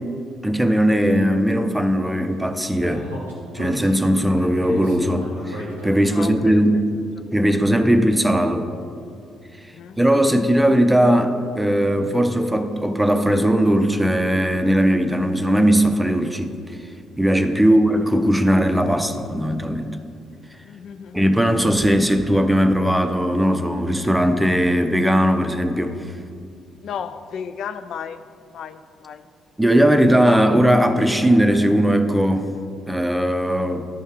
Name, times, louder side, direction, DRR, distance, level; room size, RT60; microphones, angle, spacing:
voice 1, 0.4-3.1 3.5-6.8 7.3-8.7 10.0-16.5 17.2-19.9 21.1-26.1 29.6-32.5 32.9-33.9, equal, 5° right, 7 dB, 0.6 m, -18 dB
Speech, 2.8-6.2, equal, 85° left, 1.4 m, -34 dB
voice 2, 6.1-6.8 9.6-10.0 17.6-17.8 20.6-21.3 26.8-29.2, left 7 dB, 55° left, 11 dB, 0.3 m, -35 dB
12.0 x 5.3 x 3.7 m, 2.4 s
figure-of-eight pair, 45°, 0 cm